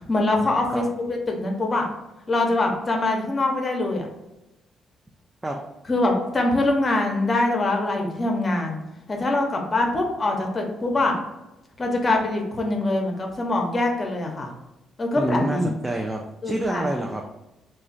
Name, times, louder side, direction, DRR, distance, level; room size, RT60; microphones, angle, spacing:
voice 1, 0.1-1.9 2.3-4.1 5.9-8.8 9.1-11.2 11.8-14.5 15.0-15.7 16.4-16.9, left 2 dB, 30° left, 2 dB, 0.6 m, -23 dB
voice 2, 15.2-17.2, right 1 dB, 15° right, 1 dB, 0.3 m, -27 dB
2.3 x 2.1 x 3.9 m, 0.94 s
cardioid pair, 90°, 0 cm